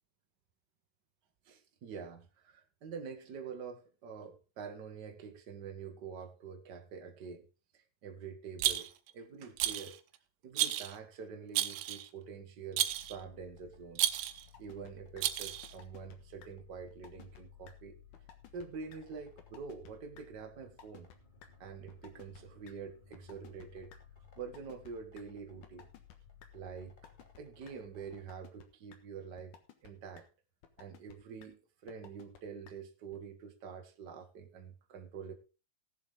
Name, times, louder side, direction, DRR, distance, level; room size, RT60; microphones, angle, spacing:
voice 1, 1.4-7.5 7.7-10.0 10.4-14.0 14.6-18.0 18.5-21.1 21.6-23.9 24.3-25.9 26.5-26.9 27.4-29.5 29.8-30.2 30.8-35.3, right 6 dB, 45° right, 1.4 m, -46 dB
Rattle, 8.6-9.1 9.6-10.0 10.6-11.0 11.6-12.1 12.8-13.2 14.0-14.4 15.2-15.7, right 13 dB, 85° right, 2.5 m, -32 dB
sound 1, 12.9-28.2, left 7 dB, 30° left, 0.8 m, -59 dB
sound 2, 14.5-14.9 15.2-15.3 15.6-16.2 16.4-16.5 16.9-17.4 17.7-17.8 18.1-18.7 18.9-19.0 19.4-19.9 20.2-20.3 20.6-21.2 21.4-21.5 21.9-22.4 22.7-22.8 23.1-24.0 24.4-25.2 25.6-26.2 26.4-26.5 26.9-27.4 27.7-27.8 28.1-28.6 28.9-29.0 29.4-29.9 30.2-30.3 30.6-31.1 31.4-31.5 31.9-32.4 32.7-32.8 33.1-33.2, left 9 dB, 65° left, 2.7 m, -55 dB
18.0 x 7.3 x 3.7 m
omnidirectional pair, 4.0 m